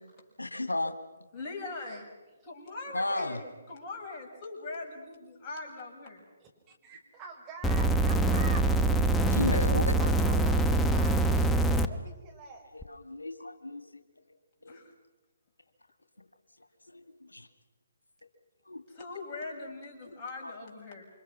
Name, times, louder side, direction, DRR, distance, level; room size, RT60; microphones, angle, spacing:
voice 1, 0.4-0.9 2.6-3.4 8.9-9.0 9.3-10.0 12.7-13.9 14.3-14.4 14.6-14.8 16.9-17.5 18.7-18.8 20.1-20.5, left 2 dB, 90° left, 8 dB, 2.0 m, -34 dB
voice 2, 1.3-2.1 2.4-6.2 14.6-14.9 18.9-21.0, left 3 dB, 30° left, -1 dB, 7.2 m, -41 dB
voice 3, 3.2-3.5 6.4-8.7 10.0-12.6, right 3 dB, 20° right, 1 dB, 5.4 m, -46 dB
sound 1, 7.6-11.9 12.8-12.9, right 2 dB, 10° left, 1.0 m, -24 dB
28.5 x 25.5 x 6.2 m, 1.1 s
figure-of-eight pair, 140°, 0 cm